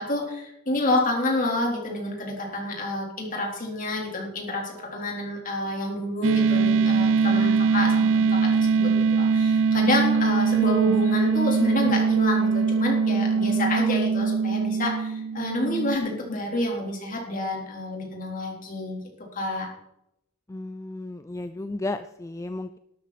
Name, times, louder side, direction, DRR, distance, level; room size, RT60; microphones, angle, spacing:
voice 1, 0.0-19.0 19.3-19.7, left 1 dB, 40° left, 0 dB, 3.7 m, -28 dB
sound 1, 6.2-16.0, right 5 dB, 65° right, 0.4 m, -22 dB
voice 2, 20.5-22.8, left 2 dB, 15° left, 10 dB, 0.4 m, -33 dB
12.5 x 12.0 x 4.2 m, 0.80 s
head